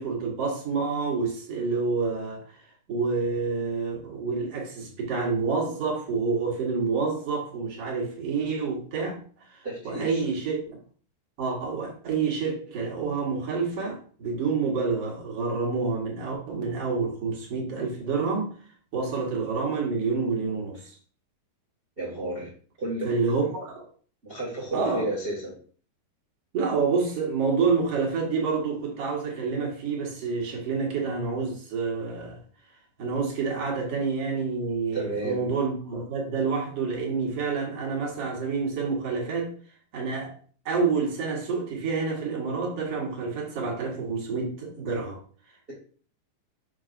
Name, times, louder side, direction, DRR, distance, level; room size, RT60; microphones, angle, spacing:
voice 1, 0.0-2.6 2.9-10.8 11.4-18.5 18.9-21.0 23.0-23.8 24.7-25.1 26.5-32.4 33.0-39.5 39.9-40.3 40.6-45.2, right 4 dB, 55° right, -1 dB, 1.8 m, -28 dB
voice 2, 9.6-10.2 20.5-20.7 22.0-22.5 22.8-23.1 23.4-23.5 24.2-25.6 34.9-35.5, right 2 dB, 35° right, -4 dB, 0.8 m, -32 dB
6.4 x 6.1 x 2.5 m, 0.43 s
omnidirectional pair, 4.7 m